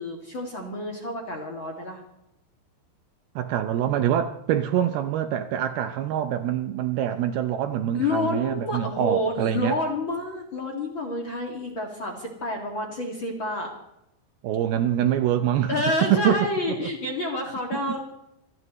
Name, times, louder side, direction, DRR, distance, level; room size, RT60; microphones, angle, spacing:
voice 1, 0.0-2.0 7.9-13.7 15.7-18.0, left 1 dB, 40° left, 2.1 m, -29 dB
voice 2, 3.4-9.8 14.4-15.8 16.1-16.4 16.8-16.9, right 10 dB, 80° right, 2.3 m, -25 dB
27.5 x 12.0 x 3.2 m
omnidirectional pair, 5.1 m